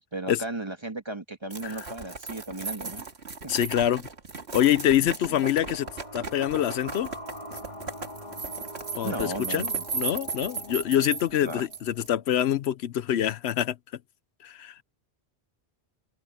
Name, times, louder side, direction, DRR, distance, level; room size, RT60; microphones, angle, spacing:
voice 1, 0.0-3.1 3.4-3.5 5.0-5.4 9.0-9.8 11.4-11.7, right 2 dB, 25° right, 1.7 m, -36 dB
sound 1, 1.5-12.1, right 4 dB, 85° right, 2.3 m, -36 dB
voice 2, 3.5-4.0 4.5-7.1 9.0-13.8 14.4-14.8, left 11 dB, 80° left, 0.9 m, -25 dB
sound 2, 5.0-12.4, equal, 40° left, 3.7 m, -44 dB
omnidirectional pair, 1.1 m